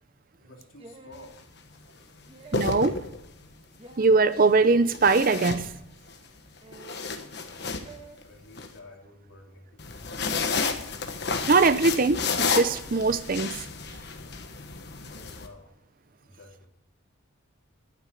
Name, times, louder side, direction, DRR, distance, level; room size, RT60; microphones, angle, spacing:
voice 1, 0.4-1.4 7.4-7.7 8.2-10.0 15.0-15.8 16.2-16.7, left 2 dB, 70° left, 3.0 m, -51 dB
sound 1, 0.8-1.4 2.3-2.9 3.8-4.2 5.2-5.7 6.6-7.1 7.9-8.2, right 2 dB, 25° right, 1.3 m, -48 dB
sound 2, 1.1-1.4 2.3-3.5 4.9-6.2 6.6-8.7 9.8-15.5, left 4 dB, 50° left, 1.2 m, -31 dB
voice 2, 2.5-3.0 4.0-5.7 11.5-13.6, right 3 dB, 40° right, 0.5 m, -21 dB
11.5 x 9.5 x 5.1 m
head